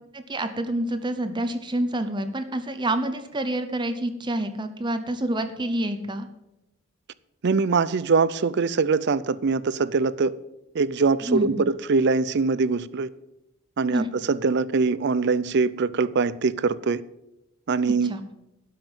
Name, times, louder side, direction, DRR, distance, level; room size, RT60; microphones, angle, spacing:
voice 1, 0.1-6.3 11.3-11.6 13.9-14.1 18.0-18.2, right 1 dB, 20° right, 0.8 m, -27 dB
voice 2, 7.4-10.4 10.7-13.1 13.8-17.0 17.7-18.1, right 4 dB, 55° right, 0.5 m, -23 dB
12.0 x 5.9 x 8.8 m
head